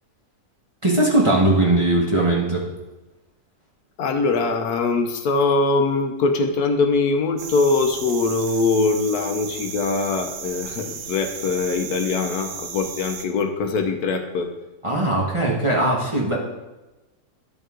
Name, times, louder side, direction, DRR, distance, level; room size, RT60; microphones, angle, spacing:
voice 1, 0.8-2.6 14.8-16.4, right 1 dB, 20° right, -4 dB, 1.2 m, -19 dB
voice 2, 4.0-14.5, left 3 dB, 70° left, 6 dB, 1.2 m, -22 dB
sound 1, 7.4-13.3, right 7 dB, 60° right, 0.8 m, -35 dB
10.5 x 5.3 x 3.7 m, 1.1 s
omnidirectional pair, 1.7 m